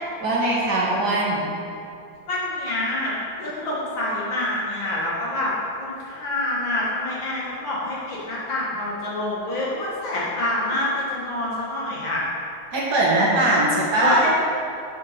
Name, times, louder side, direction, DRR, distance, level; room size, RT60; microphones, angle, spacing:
voice 1, 0.2-1.5 12.7-14.2, right 1 dB, 55° right, -5 dB, 1.9 m, -20 dB
voice 2, 2.3-3.1 3.4-12.2 14.0-14.4, left 1 dB, 70° left, -7 dB, 2.5 m, -26 dB
5.7 x 5.4 x 6.7 m, 2.5 s
omnidirectional pair, 2.2 m